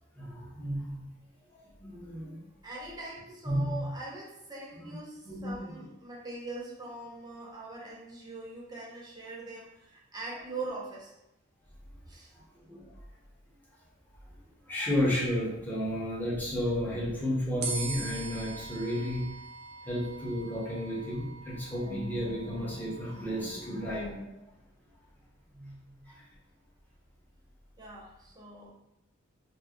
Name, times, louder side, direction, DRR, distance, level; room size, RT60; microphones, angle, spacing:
voice 1, 0.1-2.5 3.4-3.9 4.9-5.0 5.2-5.8 12.3-13.0 14.6-19.4 19.8-24.4 25.5-26.3, equal, 10° left, -6 dB, 1.0 m, -33 dB
voice 2, 2.6-11.1 12.1-12.3 27.8-28.7, right 2 dB, 20° right, -4 dB, 0.8 m, -42 dB
sound 1, 17.6-24.0, right 3 dB, 55° right, 0.5 m, -42 dB
4.3 x 2.0 x 3.0 m, 0.86 s
head